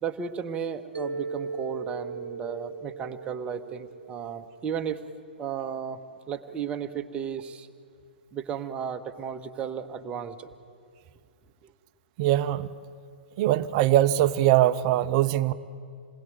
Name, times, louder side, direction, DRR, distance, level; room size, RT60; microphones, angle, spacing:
voice 1, 0.0-5.0 5.4-6.0 6.3-7.7 8.3-10.5 11.6-11.7, right 7 dB, 20° right, 7 dB, 1.2 m, -34 dB
Mallet percussion, 0.9-5.1, right 5 dB, 80° right, 0.8 m, -38 dB
voice 2, 12.2-12.7 13.4-15.5, right 13 dB, 35° right, 14 dB, 0.8 m, -22 dB
27.5 x 21.0 x 9.3 m, 2.2 s
figure-of-eight pair, 115°, 6 cm